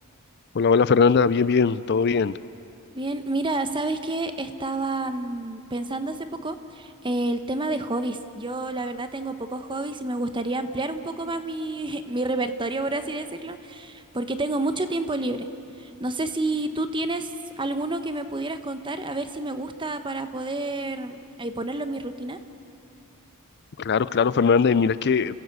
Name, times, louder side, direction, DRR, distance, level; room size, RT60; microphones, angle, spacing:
voice 1, 0.5-2.3 23.8-25.3, left 5 dB, 50° left, 16 dB, 0.4 m, -20 dB
voice 2, 2.9-6.2 6.4-15.5 15.8-17.3 17.6-22.4, right 2 dB, 20° right, 9 dB, 1.0 m, -29 dB
29.5 x 16.0 x 8.1 m, 2.8 s
head